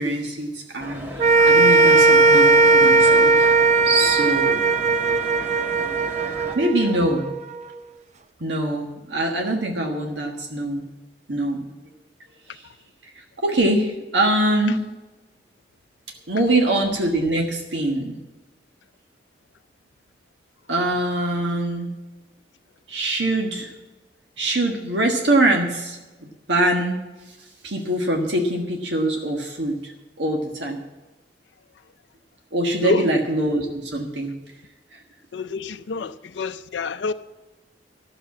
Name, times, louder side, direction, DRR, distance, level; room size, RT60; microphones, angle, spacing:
voice 1, 0.0-3.5 3.8-4.6 6.5-7.3 8.4-10.8 11.3-11.6 12.5-12.6 13.0-14.8 16.3-18.2 20.7-21.9 22.9-23.7 24.4-27.0 27.3-27.4 27.6-29.9 30.2-30.8 32.5-34.3 34.9-35.0, right 1 dB, 75° right, 1.5 m, -23 dB
sound 1, 0.8-6.6, equal, 10° right, 1.6 m, -36 dB
sound 2, 1.2-7.6, right 3 dB, 40° right, 0.5 m, -17 dB
voice 2, 32.8-33.1 35.3-37.1, left 4 dB, 80° left, 0.4 m, -27 dB
13.0 x 6.8 x 8.4 m
head